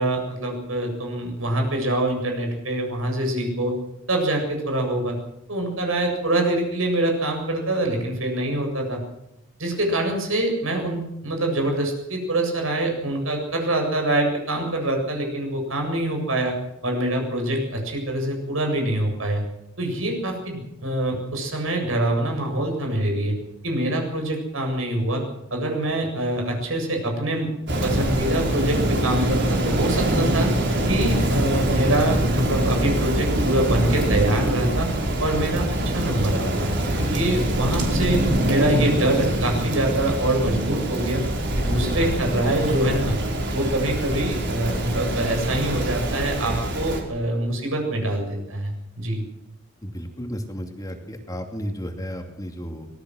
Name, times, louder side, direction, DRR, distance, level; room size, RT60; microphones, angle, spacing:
voice 1, 0.0-3.7 4.1-5.2 5.5-9.0 9.6-16.5 16.8-19.4 19.8-23.3 23.6-25.2 25.5-27.5 27.8-30.5 30.9-34.9 35.2-36.7 36.9-41.2 41.6-43.2 43.5-49.2, right 1 dB, 80° right, 3 dB, 7.7 m, -25 dB
Rain, 27.7-47.0, right 1 dB, 60° right, 4.8 m, -24 dB
voice 2, 49.8-52.9, equal, 20° left, 4 dB, 2.7 m, -33 dB
24.5 x 19.0 x 6.4 m, 0.85 s
head